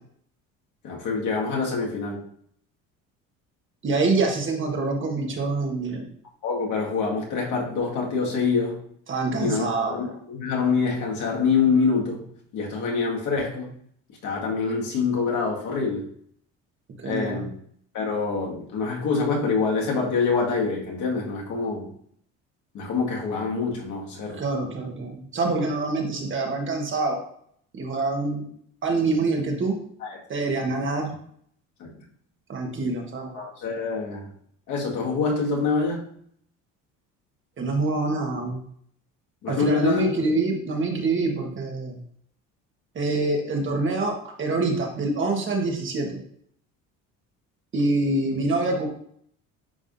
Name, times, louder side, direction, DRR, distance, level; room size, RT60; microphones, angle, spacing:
voice 1, 0.8-2.2 6.4-8.8 9.4-12.2 12.5-13.7 14.2-16.0 17.0-17.5 17.9-21.9 22.7-24.4 30.0-30.2 30.6-30.7 31.8-31.9 33.3-34.3 34.7-36.1 39.4-40.1, left 4 dB, 60° left, -2 dB, 2.0 m, -25 dB
voice 2, 3.8-6.1 9.1-9.9 17.0-17.5 24.3-27.2 27.7-28.4 28.8-29.7 30.3-31.2 32.5-33.3 37.6-38.6 39.5-42.0 42.9-46.2 47.7-48.9, right 3 dB, 35° right, 1 dB, 1.4 m, -25 dB
9.8 x 3.6 x 2.7 m, 0.65 s
cardioid pair, 105°, 34 cm